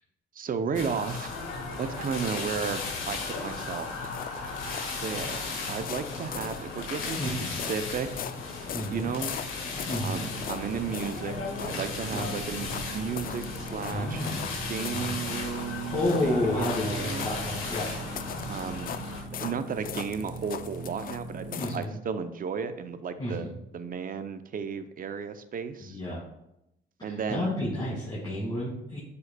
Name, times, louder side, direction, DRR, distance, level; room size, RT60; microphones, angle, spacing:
voice 1, 0.3-1.3 1.8-4.1 5.0-8.1 8.9-9.3 10.0-14.3 14.7-17.3 18.5-19.0 19.4-26.0 27.0-27.5, right 6 dB, 45° right, 10 dB, 0.6 m, -34 dB
sound 1, 0.8-19.2, left 4 dB, 90° left, 1.5 m, -36 dB
sound 2, 3.0-21.9, left 9 dB, 45° left, 0.4 m, -41 dB
voice 2, 7.2-7.6 8.7-9.1 9.9-10.2 12.1-12.3 13.9-14.5 14.9-15.2 15.9-17.9 19.3-19.4 21.5-21.9 23.2-23.5 25.8-26.2 27.0-29.0, left 1 dB, 20° left, -7 dB, 2.1 m, -31 dB
sound 3, 9.8-21.7, right 2 dB, 60° right, 1.6 m, -41 dB
8.1 x 5.4 x 2.2 m, 0.84 s
cardioid pair, 90°, 20 cm